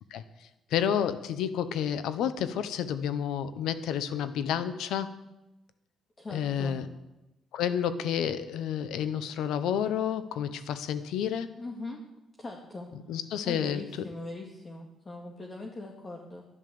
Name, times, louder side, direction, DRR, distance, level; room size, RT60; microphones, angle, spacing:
voice 1, 0.7-5.2 6.3-6.9 7.5-11.5 13.1-13.8, left 9 dB, 85° left, 12 dB, 1.0 m, -30 dB
voice 2, 6.2-6.8 11.5-12.0 12.4-12.9 13.4-16.4, left 2 dB, 35° left, 0 dB, 2.0 m, -41 dB
11.0 x 11.0 x 6.9 m, 0.95 s
cardioid pair, 90°, 0 cm